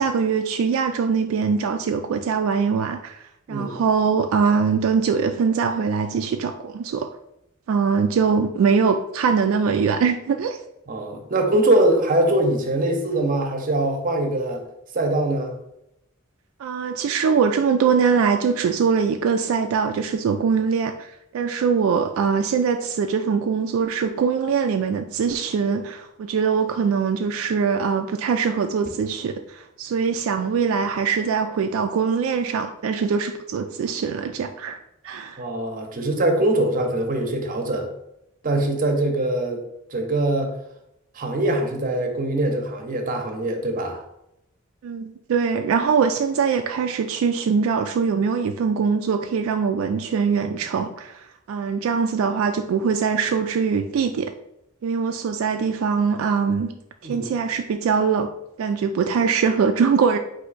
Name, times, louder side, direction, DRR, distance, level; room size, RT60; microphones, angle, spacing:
voice 1, 0.0-3.2 3.5-7.1 7.7-10.6 16.6-34.8 35.0-35.4 44.8-54.3 54.8-56.7 57.0-58.3 58.6-60.2, right 6 dB, 80° right, 6 dB, 0.3 m, -22 dB
voice 2, 3.5-3.8 10.9-14.6 14.9-15.6 35.4-37.9 38.4-39.6 39.9-40.5 41.1-44.0 57.0-57.3, right 1 dB, 40° right, 4 dB, 0.7 m, -22 dB
4.3 x 2.6 x 3.9 m, 0.82 s
head